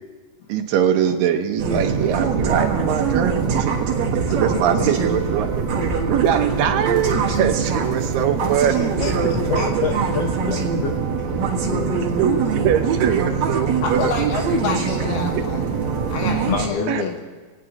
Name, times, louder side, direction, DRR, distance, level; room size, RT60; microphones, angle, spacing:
voice 1, 0.5-5.6 6.1-9.2 12.2-14.1 16.9-17.0, right 9 dB, 75° right, 7 dB, 2.5 m, -22 dB
sound 1, 1.6-16.7, right 5 dB, 60° right, 2.5 m, -23 dB
voice 2, 4.3-5.0 8.6-9.7 13.8-15.6 16.1-17.2, left 4 dB, 70° left, 1 dB, 3.5 m, -29 dB
voice 3, 9.5-10.9 11.6-12.2 16.4-17.2, left 5 dB, 90° left, 2 dB, 1.4 m, -27 dB
24.5 x 18.0 x 2.9 m, 1.4 s
omnidirectional pair, 4.1 m